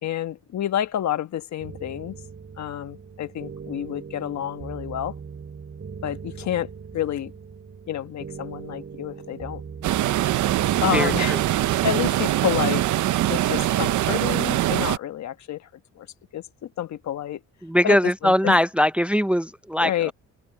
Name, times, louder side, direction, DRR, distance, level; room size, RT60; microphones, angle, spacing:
voice 1, 0.0-2.2 2.6-5.1 6.0-7.3 7.9-9.6 10.8-11.4 11.8-15.7 15.9-16.1 16.3-17.4 17.8-18.6 19.8-20.1, left 11 dB, 65° left, 1.4 m, -29 dB
sound 1, 1.6-12.8, right 6 dB, 40° right, 5.1 m, -40 dB
sound 2, 9.8-15.0, right 14 dB, 75° right, 0.8 m, -22 dB
voice 2, 10.9-11.4 17.6-20.1, equal, 5° right, 0.6 m, -21 dB
open air
cardioid pair, 90°, 30 cm